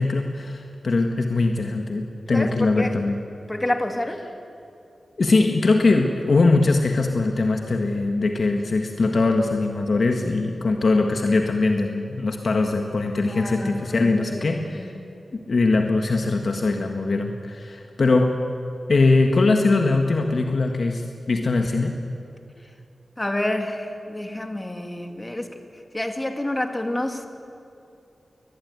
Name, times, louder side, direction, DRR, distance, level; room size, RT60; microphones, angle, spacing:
voice 1, 0.0-3.2 5.2-14.9 15.5-18.4 18.9-21.9, left 3 dB, 55° left, 4 dB, 1.6 m, -21 dB
voice 2, 2.3-3.0 3.5-4.2 13.3-15.2 23.2-25.5 25.9-27.3, left 1 dB, 15° left, 5 dB, 2.2 m, -29 dB
22.0 x 21.5 x 9.5 m, 2.6 s
wide cardioid pair, 125°, 0 cm